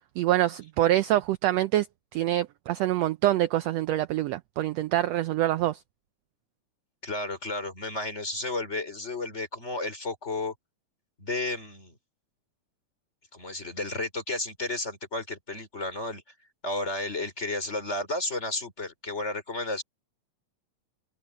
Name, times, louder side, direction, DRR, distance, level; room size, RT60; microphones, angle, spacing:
voice 1, 0.2-1.9 2.1-5.8, right 14 dB, 75° right, 1.6 m, -25 dB
voice 2, 7.0-10.5 11.2-12.0 13.3-16.2 16.6-19.8, left 2 dB, 20° left, 4.0 m, -32 dB
open air
omnidirectional pair, 3.5 m